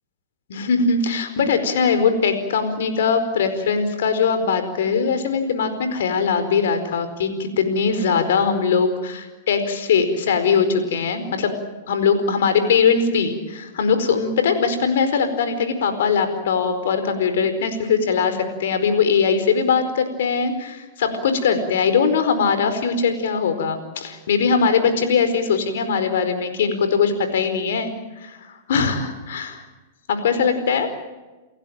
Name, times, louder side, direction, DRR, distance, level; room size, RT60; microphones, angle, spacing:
voice 1, 0.5-11.5 11.9-27.9 28.2-29.6 30.1-30.9, left 5 dB, 70° left, 9 dB, 4.7 m, -21 dB
29.5 x 15.5 x 9.0 m, 1.2 s
hypercardioid pair, 115°, 0 cm